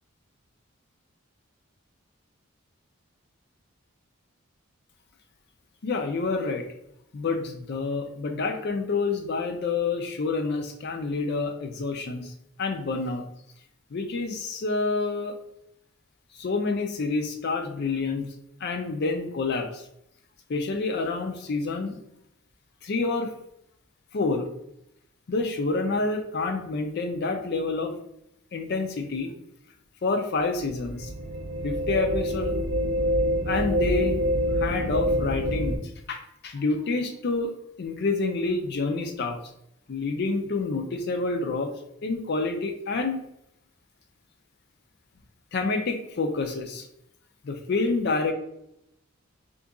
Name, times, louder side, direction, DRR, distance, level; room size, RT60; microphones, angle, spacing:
voice 1, 5.8-6.6 7.1-12.3 12.6-13.2 13.9-15.3 16.4-18.3 18.6-19.8 20.5-22.0 22.8-23.3 24.1-24.5 25.3-27.9 28.5-29.3 30.0-31.1 31.6-32.6 33.5-34.2 34.5-35.8 36.1-37.5 37.8-39.4 39.9-41.7 42.0-43.2 45.5-46.9 47.4-48.3, left 3 dB, 50° left, 5 dB, 0.4 m, -28 dB
sound 1, 30.6-35.8, equal, 45° right, 0.4 m, -26 dB
2.8 x 2.5 x 3.6 m, 0.77 s
head